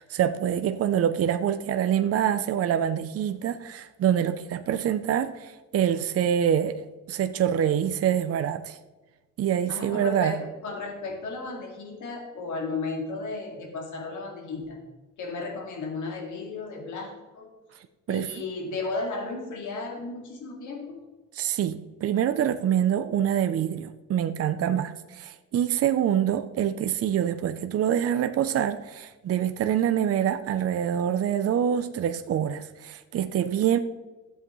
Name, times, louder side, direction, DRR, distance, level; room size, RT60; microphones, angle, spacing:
voice 1, 0.0-8.8 9.4-10.4 18.1-18.3 21.3-33.8, right 9 dB, 50° right, 0.6 m, -25 dB
voice 2, 9.7-14.8 15.2-17.5 18.1-21.0, left 3 dB, 75° left, 2.3 m, -34 dB
13.0 x 7.9 x 3.2 m
cardioid pair, 90°, 30 cm